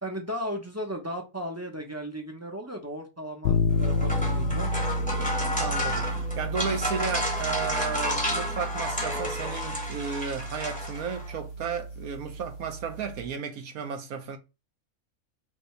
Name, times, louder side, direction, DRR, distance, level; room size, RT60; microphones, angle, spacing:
voice 1, 0.0-4.7, equal, 15° right, 0.6 m, -35 dB
sound 1, 3.4-13.3, left 1 dB, 60° left, 0.8 m, -31 dB
sound 2, 3.7-11.3, left 1 dB, 5° left, 0.9 m, -32 dB
voice 2, 5.5-14.4, right 6 dB, 70° right, 1.3 m, -34 dB
5.2 x 2.7 x 3.2 m
omnidirectional pair, 1.6 m